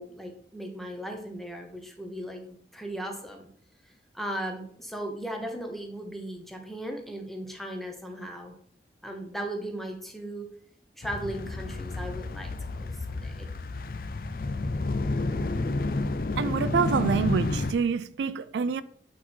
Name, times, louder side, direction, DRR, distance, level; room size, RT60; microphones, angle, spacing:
voice 1, 0.0-3.4 4.1-8.5 9.0-10.5 11.0-13.5, right 1 dB, ahead, 1.0 m, -37 dB
sound 1, 11.0-17.7, left 2 dB, 55° left, 0.4 m, -30 dB
voice 2, 16.4-18.8, right 6 dB, 80° right, 0.3 m, -27 dB
8.2 x 4.3 x 4.4 m
head